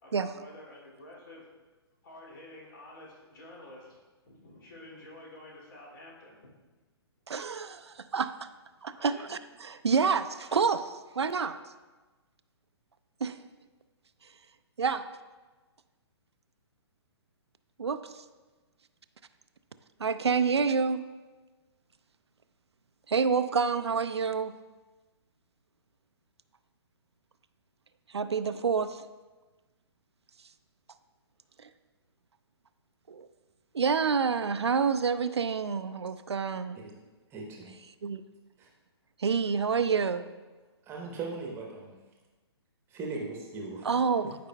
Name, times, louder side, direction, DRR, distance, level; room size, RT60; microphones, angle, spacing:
voice 1, 0.0-1.5 2.0-6.5 8.9-9.3, left 1 dB, 50° left, -4 dB, 2.4 m, -49 dB
voice 2, 7.3-8.5 8.8-11.6 13.2-13.4 14.8-15.0 17.8-18.2 20.0-21.0 23.1-24.5 28.1-29.0 31.6-31.7 33.1-33.3 33.7-36.8 38.0-38.2 39.2-40.2 43.8-44.3, right 5 dB, 75° right, 11 dB, 0.4 m, -28 dB
voice 3, 37.3-37.7 38.6-38.7 40.8-42.0 42.9-43.9, right 3 dB, 15° right, 0 dB, 1.0 m, -39 dB
13.0 x 5.1 x 2.2 m, 1.2 s
figure-of-eight pair, 125°, 14 cm